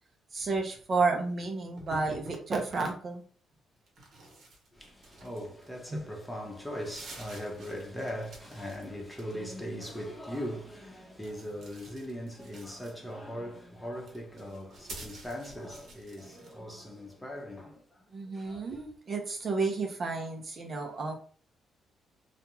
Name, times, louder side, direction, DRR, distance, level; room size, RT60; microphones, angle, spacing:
voice 1, 0.3-3.2 5.9-6.0 18.1-21.1, right 3 dB, 45° right, 0.6 m, -31 dB
sound 1, 1.8-2.5 3.9-5.8 6.3-6.4 6.7-8.8 9.1-9.6 11.2-13.2 13.9-16.6, right 2 dB, 65° right, 1.0 m, -49 dB
voice 2, 4.7-17.8 18.3-18.8, equal, 10° left, 0.8 m, -40 dB
2.5 x 2.2 x 2.9 m
cardioid pair, 90°, 0 cm